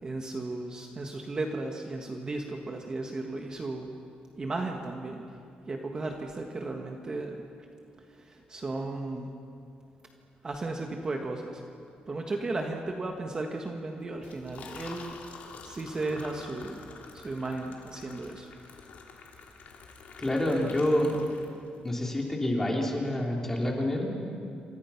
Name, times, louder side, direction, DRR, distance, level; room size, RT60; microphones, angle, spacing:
voice 1, 0.0-3.9 4.4-5.2 5.7-7.4 8.1-9.3 10.4-11.6 12.1-15.2 15.6-16.8 17.1-18.5, right 2 dB, 25° right, 2 dB, 1.4 m, -35 dB
Liquid, 14.2-21.9, left 4 dB, 60° left, 3.2 m, -47 dB
voice 2, 20.2-21.2 21.8-24.1, left 1 dB, 15° left, -1 dB, 3.5 m, -27 dB
28.5 x 25.5 x 5.8 m, 2.6 s
cardioid pair, 170°, 3 cm